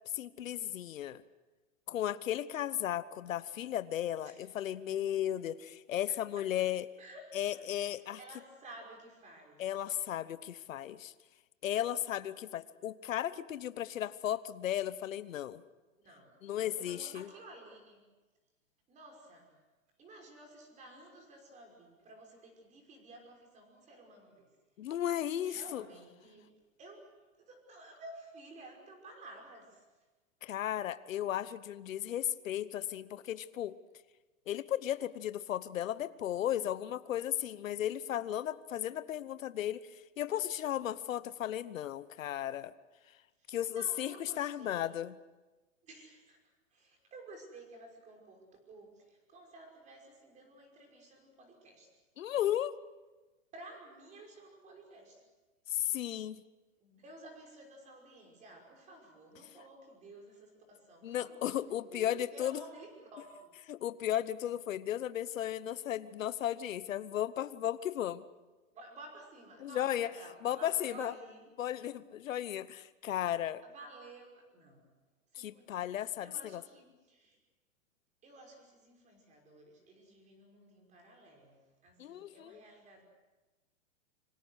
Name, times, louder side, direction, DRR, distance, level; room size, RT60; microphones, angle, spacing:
voice 1, 0.1-1.2 1.9-6.8 7.3-8.2 9.6-11.1 11.6-15.6 16.4-17.3 24.8-25.8 30.4-33.8 34.5-39.8 40.2-42.7 43.5-45.1 52.2-52.7 55.7-56.4 61.0-62.5 63.7-68.2 69.6-70.1 70.4-71.1 71.6-73.6 75.4-76.6 82.0-82.6, left 11 dB, 80° left, 15 dB, 1.1 m, -35 dB
voice 2, 6.1-6.5 7.0-7.7 8.0-9.7 16.0-18.0 18.9-19.6 20.0-24.5 25.4-29.9 43.4-45.0 45.8-46.4 46.7-51.9 53.5-55.3 56.8-63.6 68.7-71.5 73.6-74.9 75.3-77.4 78.2-83.0, right 2 dB, 20° right, 2 dB, 5.6 m, -53 dB
26.0 x 25.5 x 6.5 m, 1.2 s
hypercardioid pair, 155°, 39 cm